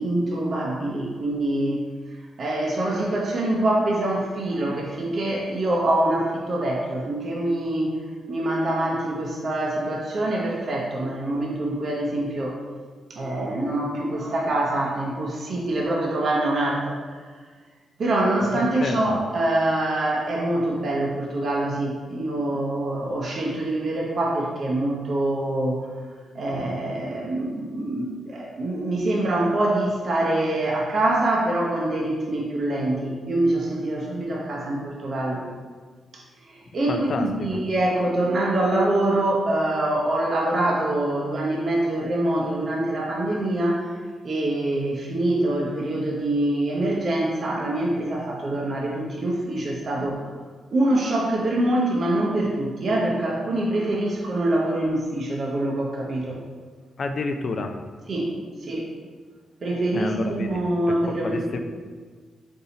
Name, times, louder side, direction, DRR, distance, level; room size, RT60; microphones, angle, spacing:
voice 1, 0.0-1.8 2.4-8.0 8.3-12.6 13.1-17.3 18.0-25.9 26.3-35.4 36.1-44.0 44.2-50.2 50.7-56.4 58.1-58.3 58.6-58.9 59.6-61.6, right 1 dB, 45° right, -2 dB, 0.6 m, -25 dB
voice 2, 18.4-19.2 26.6-26.7 36.9-37.6 57.0-57.9 59.9-60.6 60.9-61.6, left 3 dB, 45° left, 6 dB, 0.3 m, -30 dB
4.2 x 2.6 x 3.9 m, 1.5 s
cardioid pair, 125°, 0 cm